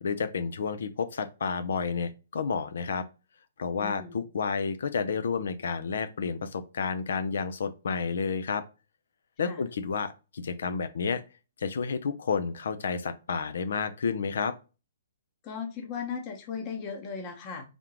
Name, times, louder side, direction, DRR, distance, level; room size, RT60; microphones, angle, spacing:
voice 1, 0.0-3.1 3.6-8.6 9.4-11.2 11.6-14.6, left 5 dB, 70° left, 0.5 m, -30 dB
voice 2, 3.7-4.2 9.4-9.6 15.4-17.7, left 6 dB, 30° left, 0.9 m, -37 dB
3.7 x 3.5 x 2.9 m
hypercardioid pair, 135°, 0 cm